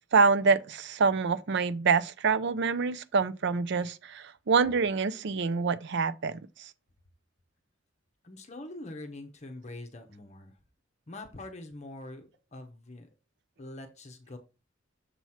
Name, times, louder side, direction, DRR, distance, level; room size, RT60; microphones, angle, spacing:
voice 1, 0.1-6.7, right 5 dB, 60° right, 0.5 m, -26 dB
voice 2, 8.2-10.6 11.1-13.1 13.6-14.4, left 2 dB, 35° left, 0.8 m, -44 dB
6.9 x 3.1 x 5.6 m
head